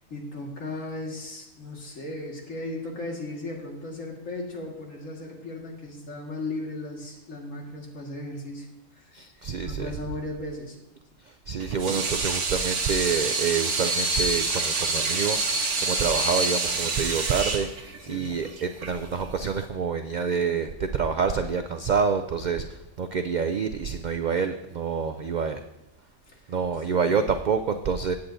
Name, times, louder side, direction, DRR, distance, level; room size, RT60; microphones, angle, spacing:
voice 1, 0.0-8.7 8.9-10.8 18.0-18.3 26.3-26.6, left 2 dB, 70° left, -1 dB, 2.2 m, -36 dB
voice 2, 9.1-9.9 11.5-15.4 15.8-25.6 26.5-28.2, right 6 dB, 85° right, 8 dB, 0.4 m, -27 dB
Water tap faucet / Sink (filling or washing), 11.6-19.6, right 3 dB, 65° right, 1.4 m, -27 dB
16.5 x 8.3 x 2.7 m, 0.89 s
omnidirectional pair, 1.4 m